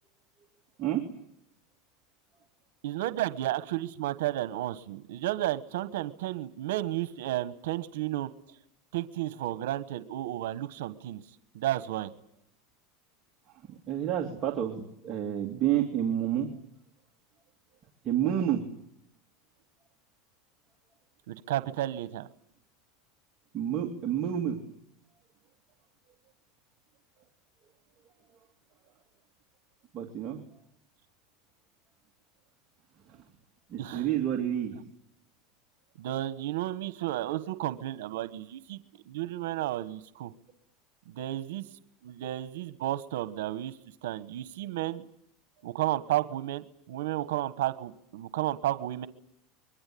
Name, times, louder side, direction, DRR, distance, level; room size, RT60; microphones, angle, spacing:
voice 1, 2.8-8.3 8.9-11.2 11.5-12.1 21.3-22.3 33.8-34.1 36.0-38.8 39.1-40.3 41.1-41.6 42.0-45.1 45.6-49.1, right 14 dB, 80° right, 13 dB, 1.3 m, -32 dB
voice 2, 13.5-16.6 18.0-18.6 23.5-24.6 29.9-30.4 33.1-33.2 33.7-34.8, right 10 dB, 25° right, -1 dB, 2.4 m, -29 dB
26.0 x 23.0 x 8.6 m, 0.74 s
supercardioid pair, 170°, 0 cm